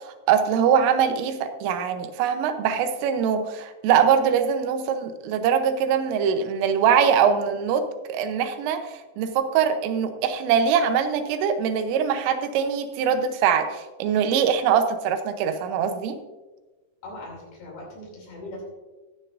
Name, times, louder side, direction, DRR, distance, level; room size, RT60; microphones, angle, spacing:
voice 1, 0.3-16.2, right 7 dB, 80° right, 8 dB, 3.4 m, -22 dB
voice 2, 17.0-18.6, left 1 dB, 60° left, -2 dB, 4.7 m, -40 dB
14.0 x 12.5 x 2.6 m, 1.2 s
omnidirectional pair, 5.9 m